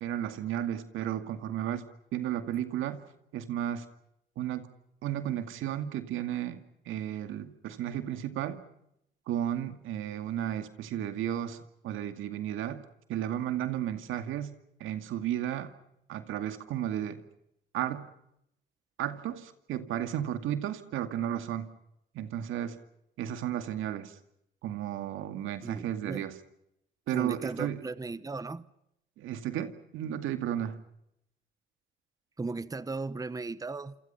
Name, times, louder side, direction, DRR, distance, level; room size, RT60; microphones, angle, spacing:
voice 1, 0.0-1.8 2.1-3.0 3.3-3.9 4.4-4.7 5.0-6.6 6.9-8.6 9.3-14.5 14.8-15.7 16.1-17.2 17.7-18.1 19.0-21.7 22.1-22.8 23.2-24.1 24.6-26.4 27.1-27.8 29.2-30.8, right 11 dB, 85° right, 2.2 m, -33 dB
voice 2, 25.6-26.2 27.1-28.6 32.4-34.0, right 3 dB, 20° right, 1.0 m, -36 dB
27.5 x 27.5 x 5.7 m
cardioid pair, 90°, 20 cm